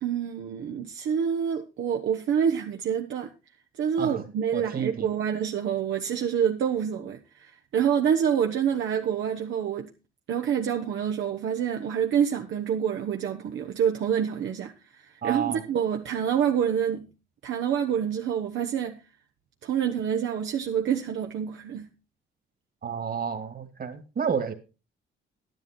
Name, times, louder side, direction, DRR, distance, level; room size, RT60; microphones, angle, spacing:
voice 1, 0.0-3.3 3.8-9.9 10.3-17.1 17.4-19.0 19.6-21.9, right 8 dB, 75° right, 1.1 m, -27 dB
voice 2, 4.5-5.1 15.2-15.6 22.8-24.5, right 7 dB, 50° right, 2.1 m, -30 dB
11.0 x 10.5 x 4.4 m
cardioid pair, 90°, 20 cm